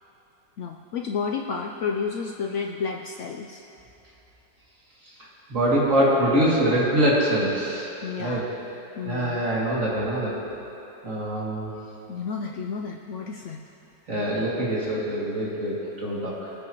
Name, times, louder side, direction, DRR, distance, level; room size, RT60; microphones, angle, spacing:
voice 1, 0.6-3.6 8.0-8.5 9.0-9.4 12.1-13.6, left 5 dB, 80° left, 2 dB, 0.6 m, -31 dB
voice 2, 5.5-7.9 8.2-8.4 9.0-10.4 11.0-11.7 14.1-16.4, right 1 dB, 45° right, -7 dB, 2.9 m, -24 dB
21.5 x 9.0 x 3.0 m, 3.0 s
omnidirectional pair, 1.9 m